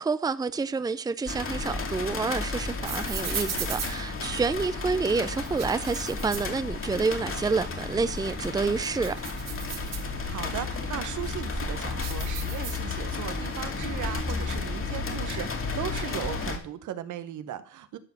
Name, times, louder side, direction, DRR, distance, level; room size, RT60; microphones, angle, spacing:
voice 1, 0.0-9.1, right 4 dB, 15° right, 0.5 m, -28 dB
sound 1, 1.3-16.6, left 4 dB, 45° left, 2.5 m, -33 dB
sound 2, 1.3-4.8 5.3-7.2 7.5-7.6 8.1-10.5 11.1-13.3 13.5-14.3, right 6 dB, 60° right, 2.6 m, -38 dB
voice 2, 10.2-18.0, right 11 dB, 80° right, 1.2 m, -37 dB
12.5 x 4.8 x 7.1 m
cardioid pair, 90°, 30 cm